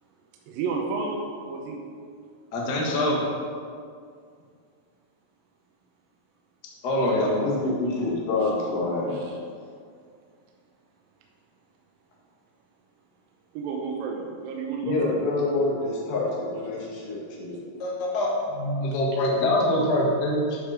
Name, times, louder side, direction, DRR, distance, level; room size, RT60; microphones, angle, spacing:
voice 1, 0.5-1.8 9.1-9.3 13.5-15.2 19.1-19.2, right 4 dB, 75° right, 0 dB, 2.5 m, -31 dB
voice 2, 2.5-3.2 6.8-7.3 17.8-20.6, left 1 dB, 55° left, -3 dB, 1.1 m, -24 dB
voice 3, 7.4-9.2 14.8-17.6, left 3 dB, 75° left, -5 dB, 3.6 m, -27 dB
11.0 x 5.2 x 4.8 m, 2.2 s
omnidirectional pair, 4.2 m